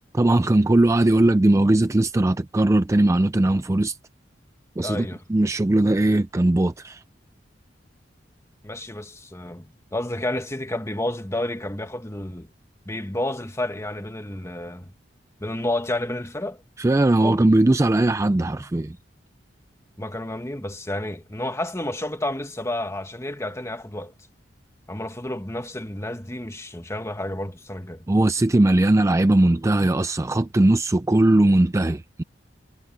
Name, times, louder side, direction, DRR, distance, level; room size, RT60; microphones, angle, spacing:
voice 1, 0.1-4.0 4.8-7.0 16.8-19.0 28.1-32.2, right 1 dB, 15° right, 0.4 m, -19 dB
voice 2, 4.8-5.2 8.6-12.5 12.8-14.9 15.4-16.6 17.2-17.4 20.0-24.1 24.9-28.1, left 1 dB, 15° left, 1.7 m, -30 dB
head